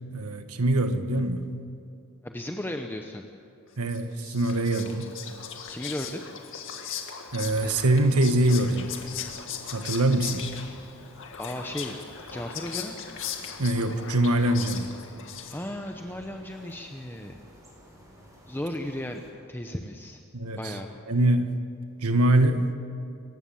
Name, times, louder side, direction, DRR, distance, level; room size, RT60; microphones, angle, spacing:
voice 1, 0.1-1.4 3.8-5.1 7.3-8.9 9.7-10.4 13.6-14.9 20.3-20.7 21.1-21.6 22.0-22.7, right 1 dB, 80° right, 8 dB, 1.6 m, -23 dB
voice 2, 2.2-3.2 5.7-6.2 11.4-12.0 12.3-13.0 15.5-17.4 18.5-19.2 19.5-20.2 20.5-20.9, left 1 dB, 10° left, 4 dB, 0.9 m, -35 dB
Whispering, 3.9-15.9, left 7 dB, 60° left, 2.1 m, -39 dB
sound 1, 7.3-19.3, equal, 15° right, 4.9 m, -52 dB
28.0 x 15.0 x 7.2 m, 2.6 s
head